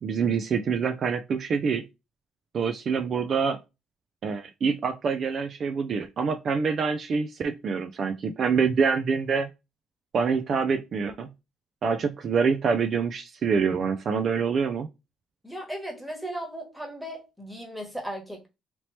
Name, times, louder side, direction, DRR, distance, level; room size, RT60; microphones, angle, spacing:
voice 1, 0.0-1.9 2.5-3.6 4.2-9.5 10.1-11.3 11.8-14.9, right 5 dB, 50° right, 0.4 m, -26 dB
voice 2, 15.4-18.5, right 1 dB, 5° right, 1.2 m, -36 dB
2.9 x 2.8 x 3.1 m
cardioid pair, 100°, 0 cm